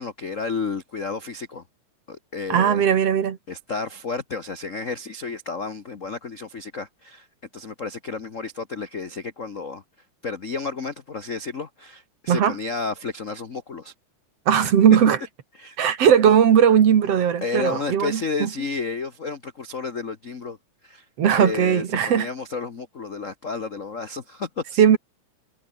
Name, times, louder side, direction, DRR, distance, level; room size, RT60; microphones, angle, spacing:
voice 1, 0.0-1.6 2.1-2.8 3.5-7.3 7.5-9.8 10.2-13.9 15.6-15.8 17.4-20.6 20.8-21.0 21.3-24.8, left 4 dB, 65° left, 0.7 m, -31 dB
voice 2, 2.5-3.4 12.3-12.5 14.5-15.2 15.8-18.5 21.2-22.3 24.8-25.0, right 8 dB, 55° right, 2.6 m, -18 dB
omnidirectional pair, 3.6 m